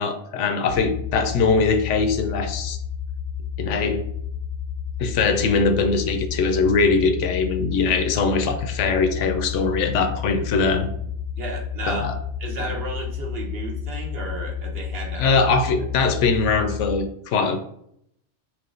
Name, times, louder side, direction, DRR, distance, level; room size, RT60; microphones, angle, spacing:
voice 1, 0.0-2.8 3.6-4.0 5.0-10.9 11.9-12.1 15.2-17.6, left 4 dB, 90° left, 7 dB, 0.9 m, -21 dB
sound 1, 0.7-17.0, left 7 dB, 60° left, 0.6 m, -31 dB
voice 2, 11.4-12.1 12.4-15.4 16.0-16.1, right 2 dB, 60° right, 1 dB, 0.9 m, -33 dB
3.5 x 3.0 x 3.8 m, 0.72 s
omnidirectional pair, 1.2 m